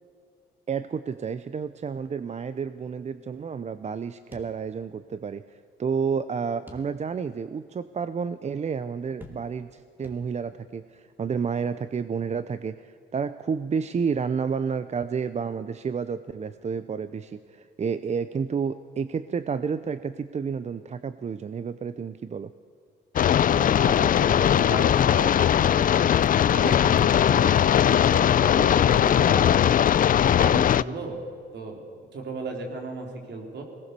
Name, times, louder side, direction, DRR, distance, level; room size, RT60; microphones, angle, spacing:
voice 1, 0.7-22.5, right 6 dB, 35° right, 13 dB, 0.6 m, -30 dB
sound 1, 4.3-5.2 5.5-5.6 6.7-7.3 7.8-7.9 9.2-9.8 10.0-10.7, left 1 dB, 10° right, 2.7 m, -49 dB
sound 2, 23.2-30.8, left 10 dB, 45° left, 0.4 m, -20 dB
voice 2, 23.5-26.1 26.5-29.6 30.2-31.2 31.5-31.8 32.1-33.6, right 3 dB, 60° right, 2 dB, 4.0 m, -35 dB
21.0 x 18.5 x 6.8 m, 2.2 s
cardioid pair, 90°, 20 cm